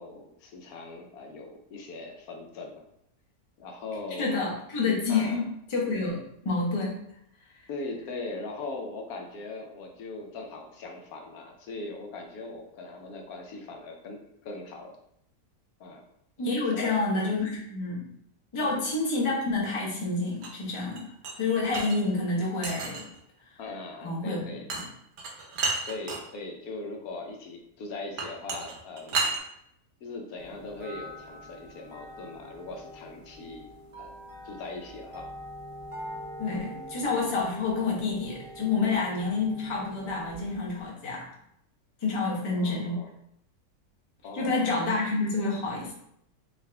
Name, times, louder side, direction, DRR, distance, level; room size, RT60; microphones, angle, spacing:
voice 1, 0.0-2.8 3.6-4.4 5.1-5.4 7.7-15.0 15.8-16.0 16.7-17.3 18.6-18.8 23.6-24.7 25.9-29.4 30.0-33.7 34.0-34.1 34.4-35.3 36.5-36.6 42.5-43.1 44.2-44.8, left 3 dB, 80° left, 2 dB, 1.1 m, -40 dB
voice 2, 4.2-5.4 5.7-7.0 16.4-18.1 18.5-21.1 21.4-23.0 23.4-23.5 24.0-24.8 36.4-41.3 42.0-43.0 44.3-45.9, left 3 dB, 25° left, -3 dB, 0.7 m, -28 dB
sound 1, 20.4-22.0 22.6-23.2 24.7-24.8 25.2-26.2 28.2-29.4, right 4 dB, 75° right, 1.2 m, -31 dB
sound 2, 30.4-40.8, equal, 45° right, 0.4 m, -44 dB
3.8 x 2.4 x 3.3 m, 0.75 s
omnidirectional pair, 1.6 m